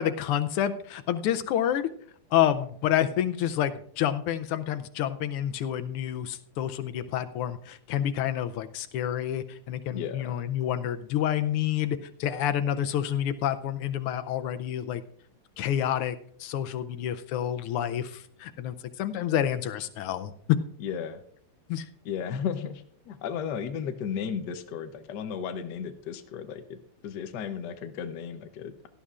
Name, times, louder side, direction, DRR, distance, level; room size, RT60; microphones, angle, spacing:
voice 1, 0.0-1.9 2.3-15.0 15.6-16.1 16.4-20.3 21.7-21.8, left 10 dB, 90° left, 11 dB, 1.6 m, -28 dB
voice 2, 9.9-10.4 20.8-21.2 22.0-26.8 27.0-28.9, left 7 dB, 60° left, 8 dB, 1.2 m, -34 dB
17.5 x 11.5 x 2.4 m, 0.63 s
omnidirectional pair, 2.4 m